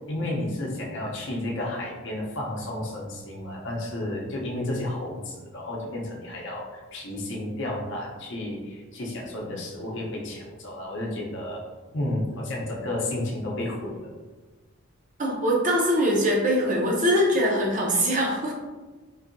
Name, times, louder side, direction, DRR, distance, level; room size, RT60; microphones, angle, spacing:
voice 1, 0.1-11.6 11.9-14.1, left 1 dB, 55° left, -3 dB, 0.7 m, -32 dB
voice 2, 15.2-18.5, equal, 35° right, -1 dB, 0.6 m, -22 dB
3.9 x 2.7 x 2.6 m, 1.3 s
head